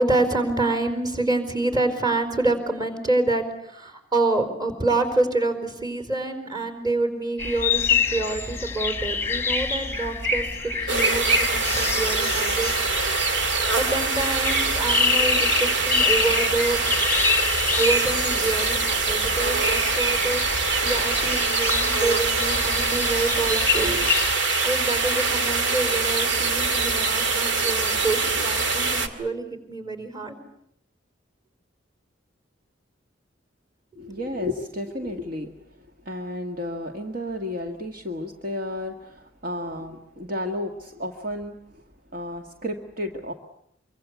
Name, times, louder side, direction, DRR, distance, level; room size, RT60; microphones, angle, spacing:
voice 1, 0.0-10.5 10.8-12.7 13.7-16.8 17.8-20.4 20.8-24.0 24.6-30.4, right 2 dB, 20° right, 9 dB, 4.5 m, -27 dB
sound 1, 7.4-24.3, left 4 dB, 10° left, 1.4 m, -26 dB
sound 2, 10.9-29.1, right 4 dB, 70° right, 2.3 m, -24 dB
voice 2, 34.0-35.6 36.1-41.8 42.1-43.3, left 1 dB, 50° right, 4 dB, 1.8 m, -32 dB
25.5 x 24.5 x 8.3 m, 0.73 s
head